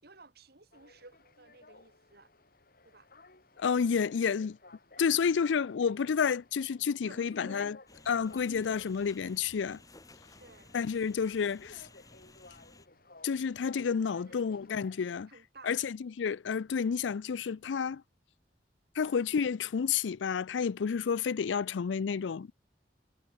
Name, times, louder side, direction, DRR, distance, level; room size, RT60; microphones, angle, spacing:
voice 1, 0.0-2.3 2.8-3.1 5.0-5.1 7.1-7.8 8.2-8.5 10.4-10.7 14.3-14.4 15.3-15.7 19.1-19.3, right 3 dB, 60° right, 3.6 m, -54 dB
sound 1, 0.7-15.2, left 2 dB, 55° left, 7.2 m, -57 dB
voice 2, 3.6-4.6 5.0-7.8 8.1-9.8 10.7-11.9 13.2-15.3 15.6-18.0 19.0-22.5, left 6 dB, 90° left, 0.4 m, -30 dB
sound 2, 7.9-12.9, left 2 dB, 20° left, 3.2 m, -57 dB
head